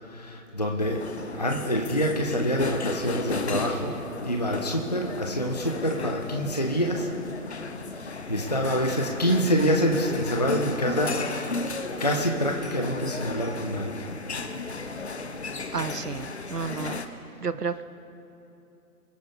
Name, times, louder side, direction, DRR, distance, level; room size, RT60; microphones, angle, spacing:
voice 1, 0.0-1.1 1.3-7.3 7.8-14.5, equal, 30° left, 2 dB, 0.5 m, -27 dB
sound 1, 0.8-17.1, left 3 dB, 45° left, 0.9 m, -35 dB
voice 2, 15.7-17.0 17.4-17.8, right 5 dB, 85° right, 14 dB, 0.8 m, -31 dB
23.5 x 9.4 x 3.7 m, 2.9 s
figure-of-eight pair, 150°, 46 cm